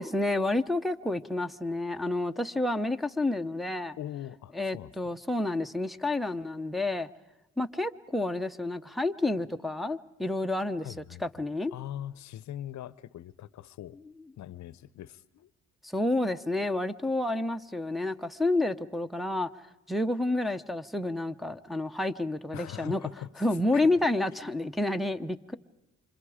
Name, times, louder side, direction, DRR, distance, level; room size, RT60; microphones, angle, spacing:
voice 1, 0.0-4.0 4.5-7.1 7.6-10.9 11.2-11.7 15.8-19.5 19.9-23.0 23.4-25.5, left 2 dB, ahead, 0.9 m, -29 dB
voice 2, 4.0-4.9 10.8-11.2 11.7-14.0 14.4-15.5 22.5-23.9, left 12 dB, 65° left, 0.8 m, -41 dB
28.5 x 26.0 x 5.0 m
cardioid pair, 90°, 30 cm